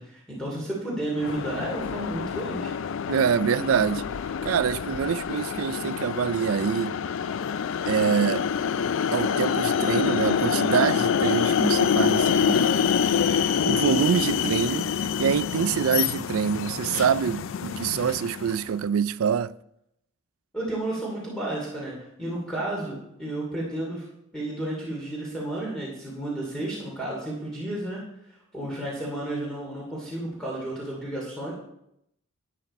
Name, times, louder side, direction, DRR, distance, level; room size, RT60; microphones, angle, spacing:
voice 1, 0.0-2.7 20.5-24.1 24.3-28.0 28.5-31.5, right 1 dB, 5° left, 2.7 m, -32 dB
sound 1, 1.2-18.7, left 7 dB, 65° left, 0.4 m, -26 dB
voice 2, 3.1-4.0 4.4-7.0 7.9-8.5 9.1-12.8 13.2-19.6, right 7 dB, 85° right, 0.4 m, -25 dB
12.0 x 9.2 x 4.3 m
head